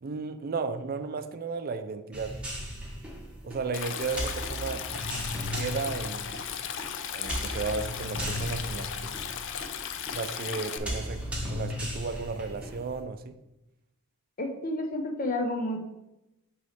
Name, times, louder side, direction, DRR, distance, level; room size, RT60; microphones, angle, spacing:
voice 1, 0.0-2.4 3.4-4.8 5.5-6.5 7.1-9.1 10.1-11.2 11.5-13.4, right 4 dB, 40° right, 10 dB, 0.5 m, -34 dB
sound 1, 2.1-13.0, equal, 5° right, 1.2 m, -36 dB
Stream, 3.7-10.8, left 8 dB, 55° left, 0.4 m, -36 dB
voice 2, 14.4-15.9, left 1 dB, 40° left, 4 dB, 0.8 m, -30 dB
6.1 x 3.1 x 5.7 m, 0.92 s
head